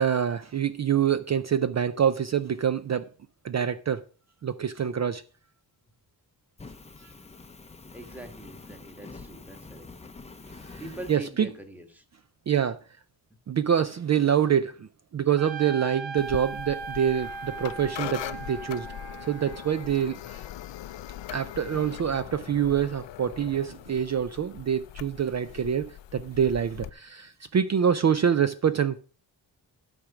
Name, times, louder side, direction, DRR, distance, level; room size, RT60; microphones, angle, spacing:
voice 1, 0.0-3.1 3.4-4.0 4.4-5.2 7.0-7.1 10.7-10.8 11.1-11.5 12.5-12.8 13.5-18.9 19.3-20.5 21.3-29.0, right 8 dB, 40° right, 0.4 m, -26 dB
Fire, 6.6-11.2, left 3 dB, 15° left, 0.6 m, -46 dB
voice 2, 7.9-9.9 10.8-12.0, right 1 dB, 5° right, 1.3 m, -43 dB
Trumpet, 15.4-20.1, right 4 dB, 85° right, 1.1 m, -39 dB
sound 1, 16.2-26.9, left 12 dB, 75° left, 0.6 m, -41 dB
12.0 x 5.1 x 5.8 m
wide cardioid pair, 170°, 44 cm